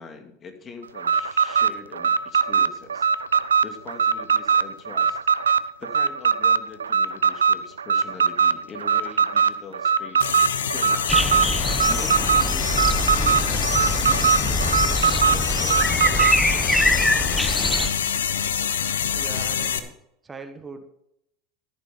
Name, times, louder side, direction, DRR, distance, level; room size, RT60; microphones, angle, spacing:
voice 1, 0.0-3.1 3.6-5.2 5.8-10.3 10.6-11.2 11.9-16.3, left 5 dB, 35° left, 4 dB, 2.7 m, -42 dB
Alarm, 1.0-16.4, right 6 dB, 90° right, 0.4 m, -21 dB
sound 1, 10.2-19.8, left 8 dB, 85° left, 1.0 m, -26 dB
sound 2, 11.1-17.9, left 1 dB, 5° left, 1.0 m, -24 dB
voice 2, 19.1-20.0 20.2-20.9, right 4 dB, 20° right, 8 dB, 1.4 m, -40 dB
14.0 x 9.2 x 5.5 m, 0.79 s
hypercardioid pair, 85°, 0 cm